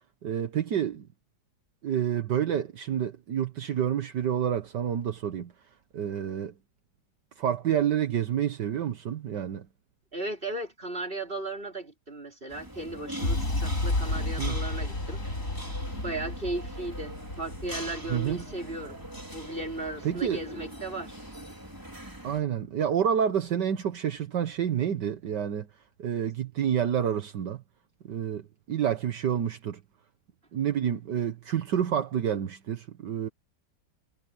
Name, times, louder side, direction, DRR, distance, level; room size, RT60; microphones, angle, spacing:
voice 1, 0.2-1.1 1.8-5.5 5.9-6.5 7.4-9.7 14.4-14.6 18.1-18.4 20.0-20.4 22.2-25.7 26.0-27.6 28.0-29.8 30.5-33.3, right 9 dB, 70° right, 1.8 m, -28 dB
voice 2, 10.1-15.2 16.0-19.0 19.3-21.2, right 2 dB, 30° right, 5.5 m, -36 dB
sound 1, 12.5-22.4, right 1 dB, 10° right, 4.0 m, -42 dB
sound 2, 13.2-21.1, left 2 dB, 45° left, 4.0 m, -33 dB
omnidirectional pair, 1.9 m